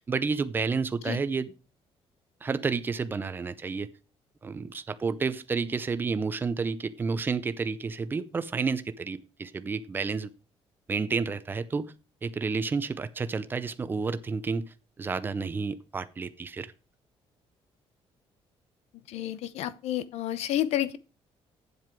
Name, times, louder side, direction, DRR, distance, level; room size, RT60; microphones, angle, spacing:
voice 1, 0.0-1.5 2.4-3.9 4.4-10.3 10.9-11.9 12.2-16.7, right 4 dB, 20° right, 0.6 m, -30 dB
voice 2, 19.1-21.0, left 12 dB, 85° left, 0.8 m, -30 dB
9.3 x 7.6 x 4.7 m
cardioid pair, 175°, 11 cm